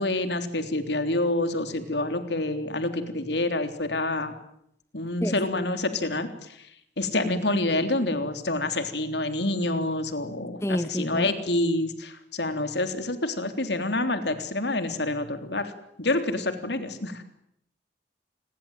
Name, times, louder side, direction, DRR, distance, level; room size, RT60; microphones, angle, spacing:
voice 1, 0.0-4.3 4.9-6.3 7.0-15.7 16.0-17.2, left 2 dB, 70° left, 3.5 m, -27 dB
voice 2, 10.6-11.3, equal, 15° left, 1.4 m, -28 dB
29.0 x 21.5 x 9.2 m
head